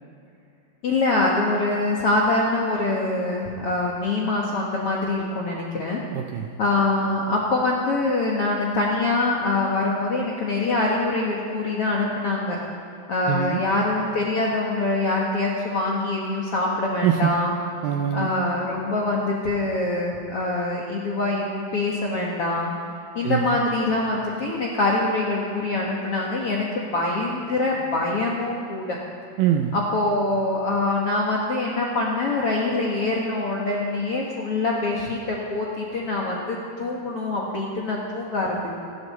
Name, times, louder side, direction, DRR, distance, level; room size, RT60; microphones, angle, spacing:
voice 1, 0.8-6.0 6.6-12.6 13.1-17.5 18.1-22.7 23.1-29.0 29.7-38.8, left 2 dB, 60° left, -3 dB, 1.5 m, -24 dB
voice 2, 6.1-6.5 13.3-13.6 17.0-17.4 17.8-18.3 23.2-23.6 29.4-29.8, right 10 dB, 80° right, 5 dB, 2.1 m, -23 dB
26.5 x 12.0 x 4.2 m, 2.5 s
omnidirectional pair, 4.8 m